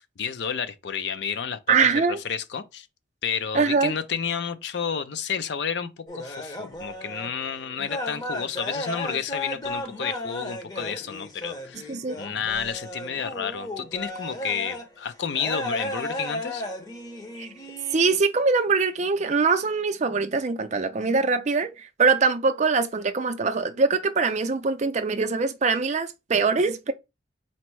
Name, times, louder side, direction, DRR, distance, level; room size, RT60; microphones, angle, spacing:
voice 1, 0.0-2.9 3.2-11.9 12.2-16.6, left 7 dB, 60° left, 0.4 m, -31 dB
voice 2, 1.7-2.2 3.5-3.9 11.9-12.2 17.4-17.5 17.9-26.9, right 4 dB, 35° right, 0.4 m, -23 dB
sound 1, 6.1-7.3 7.6-14.9 15.3-18.2, left 1 dB, 20° left, 0.7 m, -34 dB
4.2 x 2.1 x 4.5 m
head